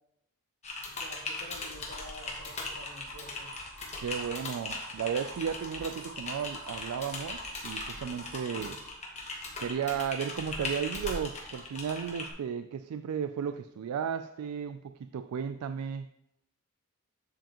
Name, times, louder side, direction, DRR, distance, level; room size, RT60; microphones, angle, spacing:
Typing, 0.6-12.3, left 2 dB, 30° left, 1.2 m, -39 dB
voice 1, 0.9-3.6 8.0-8.8 9.1-9.2, left 1 dB, 65° left, 1 dB, 1.4 m, -50 dB
sound 1, 1.5-8.9, right 2 dB, 65° right, 2.2 m, -49 dB
voice 2, 4.0-8.8 9.6-16.1, right 7 dB, 85° right, 10 dB, 0.3 m, -34 dB
7.6 x 7.4 x 2.9 m, 0.84 s
head